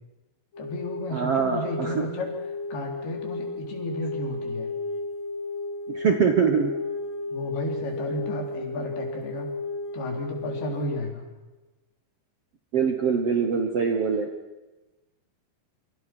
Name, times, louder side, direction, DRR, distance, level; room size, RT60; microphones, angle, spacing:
sound 1, 0.5-11.0, left 3 dB, 45° left, 4.1 m, -34 dB
voice 1, 0.6-2.3 2.7-4.7 7.3-9.5 9.9-11.2, left 1 dB, 70° left, 2 dB, 5.8 m, -33 dB
voice 2, 1.1-2.1 5.9-6.7 12.7-14.3, right 6 dB, 55° right, 5 dB, 1.8 m, -23 dB
27.5 x 25.0 x 6.2 m, 1.1 s
omnidirectional pair, 4.7 m